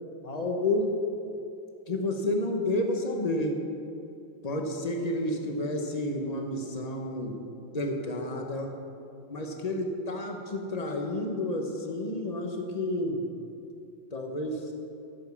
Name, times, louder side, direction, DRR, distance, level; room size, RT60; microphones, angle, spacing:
voice 1, 0.2-0.9 1.9-3.6 4.4-7.4 7.7-8.7 9.3-13.2 14.1-14.6, left 1 dB, 35° left, 2 dB, 0.6 m, -30 dB
11.5 x 7.3 x 7.0 m, 2.5 s
omnidirectional pair, 2.3 m